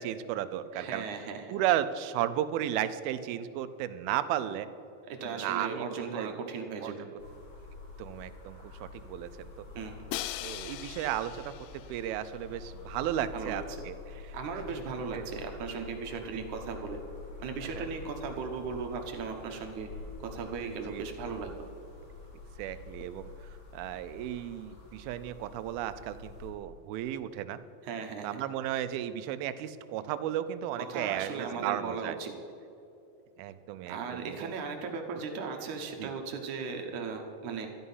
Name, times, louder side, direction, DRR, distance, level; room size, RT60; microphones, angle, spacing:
voice 1, 0.0-1.0 1.5-4.7 5.2-6.3 6.8-7.1 8.0-9.7 10.4-14.0 15.1-15.3 16.3-16.4 17.8-17.9 20.9-21.1 22.6-27.6 28.2-32.2 33.4-34.5 36.0-36.1, right 11 dB, 90° right, 12 dB, 2.5 m, -34 dB
voice 2, 0.7-1.6 5.1-7.1 9.7-10.0 13.3-13.8 14.3-17.0 17.4-19.9 20.2-21.6 27.8-28.4 30.8-32.3 33.9-37.7, right 5 dB, 65° right, 3 dB, 2.1 m, -37 dB
sound 1, 7.2-26.5, left 4 dB, 40° left, 2.5 m, -47 dB
Crash cymbal, 10.1-12.1, left 14 dB, 85° left, 2.4 m, -39 dB
12.5 x 11.0 x 5.5 m, 2.8 s
omnidirectional pair, 4.2 m